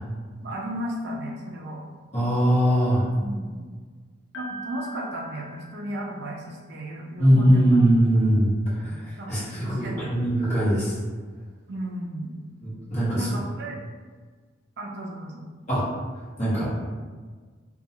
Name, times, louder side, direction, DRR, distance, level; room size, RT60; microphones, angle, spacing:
voice 1, 0.4-1.8 3.2-3.7 4.3-7.8 8.8-10.1 11.7-12.3 13.1-13.8 14.8-15.4, right 1 dB, 50° right, -1 dB, 0.3 m, -35 dB
voice 2, 2.1-3.1 7.2-9.0 9.3-10.9 12.6-13.3 15.7-15.8 16.4-16.7, equal, 35° left, -10 dB, 1.1 m, -21 dB
Piano, 4.3-6.4, right 1 dB, 70° left, 0.5 m, -42 dB
2.6 x 2.2 x 2.7 m, 1.5 s
head